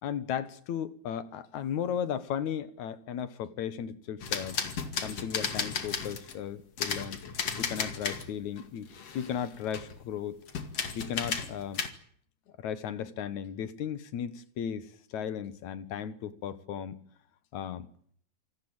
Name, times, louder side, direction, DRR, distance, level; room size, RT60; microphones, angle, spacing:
voice 1, 0.0-4.6 5.0-7.2 7.6-8.9 9.1-10.4 10.9-11.8 12.6-17.0 17.5-17.9, left 8 dB, 75° left, 14 dB, 2.9 m, -35 dB
sound 1, 4.2-6.4 6.8-8.3 8.6-10.0 10.5-11.9, left 6 dB, 55° left, 3.3 m, -34 dB
27.5 x 18.5 x 9.0 m, 0.63 s
omnidirectional pair, 3.3 m